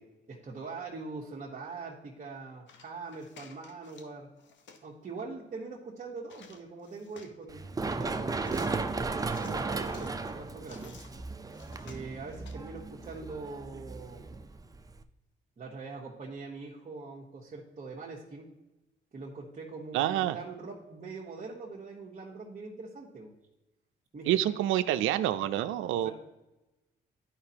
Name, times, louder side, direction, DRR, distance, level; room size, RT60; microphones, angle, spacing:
voice 1, 0.3-4.3 4.8-8.9 9.3-11.0 11.8-14.2 15.6-18.5 19.1-23.3 24.1-24.5 26.0-26.1, right 4 dB, 35° right, -5 dB, 1.2 m, -42 dB
sound 1, 2.7-4.1 4.4-4.9 6.2-7.4 8.3-8.7 9.2-11.1 11.5-12.5, left 5 dB, 65° left, 1.0 m, -54 dB
Run, 7.5-15.0, right 3 dB, 20° right, 0.5 m, -35 dB
voice 2, 19.9-20.4 24.3-26.1, right 12 dB, 85° right, 10 dB, 0.4 m, -27 dB
11.5 x 5.1 x 2.8 m, 1.0 s
cardioid pair, 90°, 20 cm